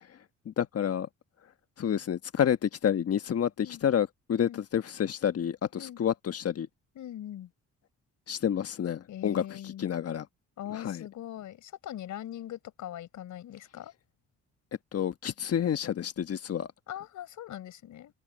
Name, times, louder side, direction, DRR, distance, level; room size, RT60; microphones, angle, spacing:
voice 1, 0.4-1.1 1.8-6.7 8.3-10.3 10.7-11.0 14.9-16.7, left 9 dB, 50° left, 1.3 m, -29 dB
voice 2, 6.9-7.5 9.1-9.9 10.6-13.9 16.9-18.1, left 11 dB, 75° left, 4.8 m, -41 dB
cardioid pair, 90°, 30 cm